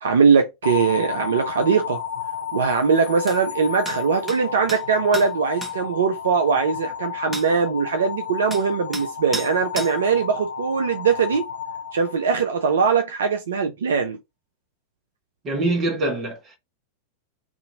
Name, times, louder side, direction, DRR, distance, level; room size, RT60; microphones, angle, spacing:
voice 1, 0.0-2.0 2.5-11.4 11.9-14.2, right 5 dB, 65° right, 0.3 m, -21 dB
sound 1, 0.6-12.8, left 8 dB, 75° left, 0.6 m, -32 dB
sound 2, 3.3-3.4 3.9-4.0 4.3-4.4 4.7-4.8 5.1-5.3 5.6-5.7 7.3-7.5 8.5-8.6 8.9-9.1 9.3-9.5 9.8-9.9, right 1 dB, ahead, 0.7 m, -32 dB
voice 2, 15.4-16.6, right 2 dB, 30° right, 1.0 m, -24 dB
2.5 x 2.5 x 2.7 m
figure-of-eight pair, 90°, 0 cm